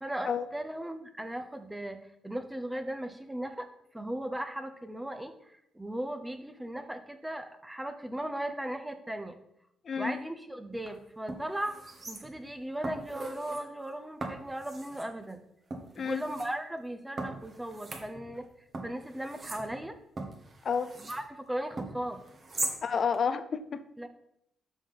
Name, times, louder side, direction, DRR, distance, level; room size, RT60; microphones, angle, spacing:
voice 1, 0.0-3.7 3.9-9.4 10.0-11.7 12.1-15.4 15.9-18.5 18.8-20.0 21.0-22.2 24.0-24.1, right 1 dB, 10° right, 7 dB, 0.8 m, -37 dB
voice 2, 9.8-10.2 16.0-16.2 20.6-20.9 22.8-23.8, left 6 dB, 50° left, 12 dB, 0.5 m, -30 dB
sound 1, 10.7-10.9 11.3-12.5 12.8-13.6 14.2-15.1 15.7-16.5 17.2-18.5 18.7-21.2 21.8-22.8 23.1-23.2, right 2 dB, 35° right, 1.5 m, -40 dB
6.1 x 5.7 x 5.7 m, 0.77 s
cardioid pair, 90°, 0 cm